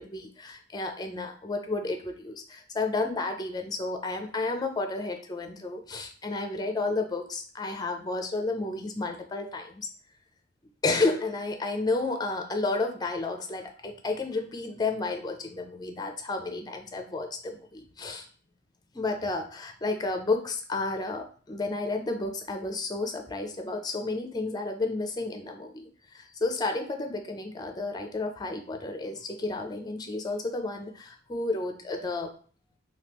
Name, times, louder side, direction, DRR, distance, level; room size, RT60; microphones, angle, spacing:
voice 1, 0.0-9.9 10.8-18.3 18.9-32.3, left 3 dB, 20° left, 5 dB, 0.5 m, -31 dB
3.5 x 2.7 x 2.9 m, 0.43 s
head